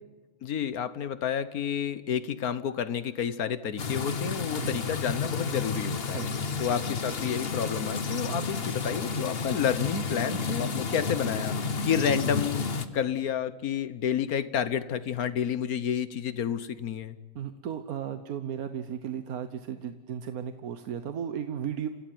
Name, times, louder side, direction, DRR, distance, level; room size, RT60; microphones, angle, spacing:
voice 1, 0.4-6.3 6.6-17.2, left 8 dB, 85° left, 14 dB, 1.6 m, -30 dB
sound 1, 3.8-12.9, left 5 dB, 45° left, 1.3 m, -31 dB
voice 2, 6.1-6.5 8.3-8.5 17.3-21.9, right 8 dB, 80° right, 9 dB, 1.4 m, -35 dB
29.5 x 15.5 x 9.3 m, 1.3 s
omnidirectional pair, 1.5 m